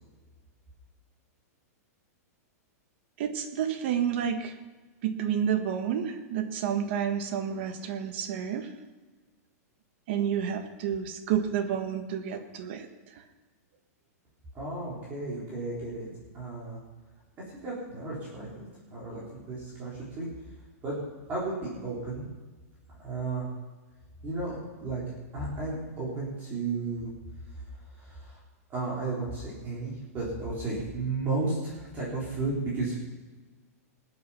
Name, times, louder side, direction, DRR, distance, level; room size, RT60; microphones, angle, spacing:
voice 1, 3.2-4.5 5.0-8.7 10.1-13.2, right 8 dB, 45° right, 7 dB, 1.5 m, -30 dB
voice 2, 14.5-16.1 16.3-16.8 17.5-20.3 20.8-21.0 21.3-22.3 23.0-23.4 24.2-25.0 25.3-27.1 27.5-27.6 27.9-28.4 28.7-33.0, right 3 dB, 20° right, -7 dB, 4.0 m, -33 dB
20.5 x 8.6 x 5.8 m, 1.3 s
supercardioid pair, 170°, 9 cm